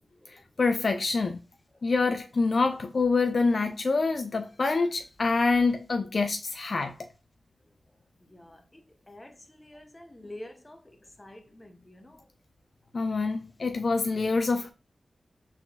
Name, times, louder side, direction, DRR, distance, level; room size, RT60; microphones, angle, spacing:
voice 1, 0.6-1.4 1.8-6.9 12.9-14.7, left 4 dB, 55° left, 0.6 m, -26 dB
voice 2, 9.1-10.8 11.2-11.7 12.0-12.1, left 1 dB, 20° left, 0.9 m, -46 dB
4.3 x 3.8 x 2.3 m
wide cardioid pair, 80°, 0 cm